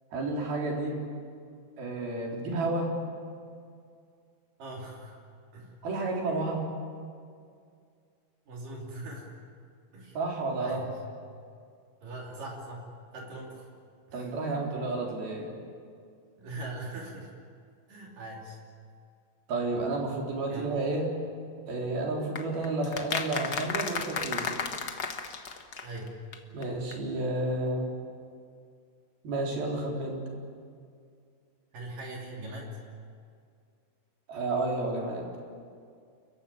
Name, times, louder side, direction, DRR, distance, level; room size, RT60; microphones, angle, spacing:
voice 1, 0.1-1.0 1.8-2.9 5.8-6.6 10.2-10.8 14.1-15.5 19.5-21.1 21.7-24.5 26.5-27.9 29.2-30.2 34.3-35.3, right 2 dB, 90° right, -1 dB, 5.7 m, -31 dB
voice 2, 4.6-5.2 5.5-5.8 8.5-9.3 9.9-10.2 10.6-11.0 12.0-12.9 13.1-13.7 14.1-14.3 16.4-17.3 17.9-18.6 20.5-20.7 25.8-26.2 31.7-32.8, right 2 dB, 65° right, -2 dB, 4.6 m, -41 dB
sound 1, 22.4-26.4 26.6-26.7 26.9-27.0, left 5 dB, 85° left, 0.8 m, -33 dB
29.0 x 15.0 x 9.9 m, 2.2 s
omnidirectional pair, 4.2 m